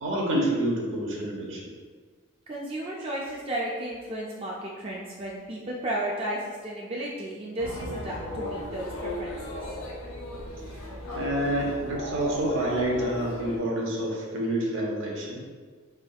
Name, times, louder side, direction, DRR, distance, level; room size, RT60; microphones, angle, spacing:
voice 1, 0.0-1.6 10.6-10.7 11.1-15.4, right 1 dB, 60° right, -2 dB, 0.8 m, -28 dB
voice 2, 2.5-9.4, right 1 dB, 25° right, -4 dB, 0.4 m, -33 dB
sound 1, 7.6-13.6, left 1 dB, 65° left, 0.7 m, -36 dB
4.5 x 3.4 x 2.3 m, 1.5 s
head